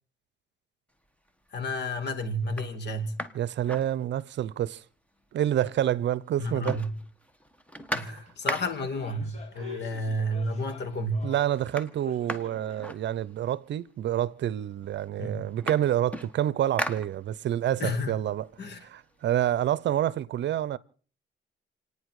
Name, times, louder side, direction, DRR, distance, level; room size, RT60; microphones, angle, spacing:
sound 1, 1.0-1.5 2.0-2.1 2.4-4.5 4.9-5.0 5.2-6.0 6.3-9.0 10.0-10.1 10.5-11.0 11.2-13.6 14.4-14.5 14.8-17.7 18.1-19.8, equal, 5° left, 1.5 m, -38 dB
voice 1, 1.5-3.1 6.4-7.0 7.9-11.2 15.2-15.3 17.8-18.1 18.6-18.8, equal, 60° left, 2.6 m, -31 dB
voice 2, 3.3-4.8 5.3-6.8 8.0-8.2 9.6-9.8 11.2-20.8, right 11 dB, 65° right, 0.7 m, -28 dB
sound 2, 7.8-8.0 8.3-11.6 12.0-12.9 13.2-13.3 14.0-14.1, left 5 dB, 35° left, 4.8 m, -47 dB
29.0 x 9.8 x 4.8 m
cardioid pair, 90°, 20 cm